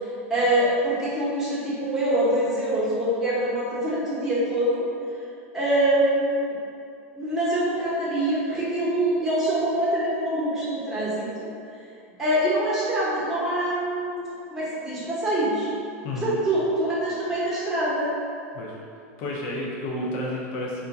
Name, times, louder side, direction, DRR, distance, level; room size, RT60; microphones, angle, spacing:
voice 1, 0.3-4.8 5.5-6.6 7.1-11.5 12.2-15.7 16.2-18.1, right 1 dB, 5° right, -9 dB, 0.9 m, -24 dB
voice 2, 16.0-16.4 18.5-18.8 19.2-20.9, left 1 dB, 50° left, -4 dB, 0.7 m, -31 dB
2.5 x 2.2 x 4.0 m, 2.5 s
hypercardioid pair, 120°, 8 cm